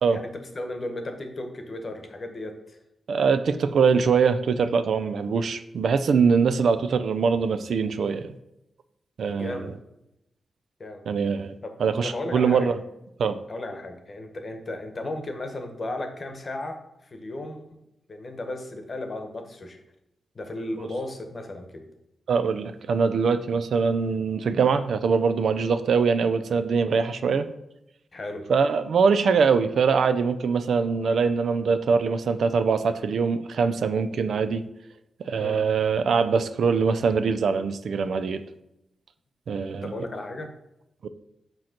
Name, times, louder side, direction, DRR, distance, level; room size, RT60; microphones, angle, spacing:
voice 1, 0.1-2.8 9.3-9.8 10.8-11.0 12.0-12.7 13.5-17.8 18.1-19.8 20.3-21.8 28.1-28.5 35.4-35.6 39.8-40.5, left 2 dB, 35° left, 5 dB, 1.0 m, -35 dB
voice 2, 3.1-8.3 9.2-9.7 11.1-12.8 13.2-13.4 22.3-27.5 28.5-34.6 35.2-38.4 39.5-39.9 41.0-41.1, right 5 dB, 70° right, 11 dB, 0.4 m, -23 dB
7.6 x 3.0 x 5.8 m, 0.88 s
wide cardioid pair, 150°, 0 cm